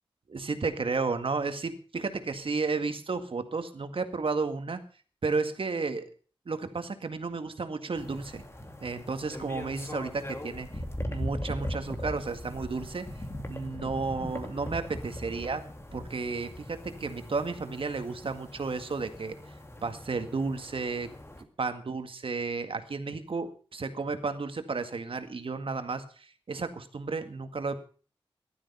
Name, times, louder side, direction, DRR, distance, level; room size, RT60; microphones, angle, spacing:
voice 1, 0.3-4.8 5.2-6.1 6.5-8.4 8.8-13.1 13.5-15.6 15.9-19.4 19.8-21.1 21.6-27.8, right 4 dB, 70° right, 8 dB, 1.9 m, -33 dB
sound 1, 7.9-21.4, left 1 dB, 25° left, 2.4 m, -40 dB
15.5 x 12.5 x 5.5 m, 0.40 s
wide cardioid pair, 75°, 10 cm